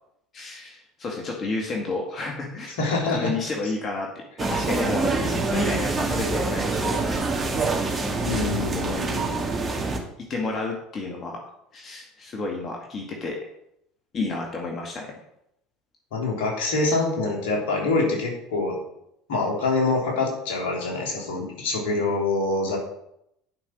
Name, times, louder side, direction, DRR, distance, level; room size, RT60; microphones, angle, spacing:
voice 1, 0.3-2.7 3.1-4.1 4.4-7.0 8.7-9.0 10.3-11.4 11.7-13.4 14.1-15.1, left 3 dB, 40° left, 0 dB, 2.0 m, -31 dB
voice 2, 2.8-3.3 8.2-9.5 16.1-18.8 19.3-22.8, left 3 dB, 70° left, 0 dB, 3.2 m, -25 dB
sound 1, 4.4-10.0, right 3 dB, 25° right, 2.1 m, -26 dB
9.8 x 5.8 x 6.3 m, 0.78 s
hypercardioid pair, 70°, 0 cm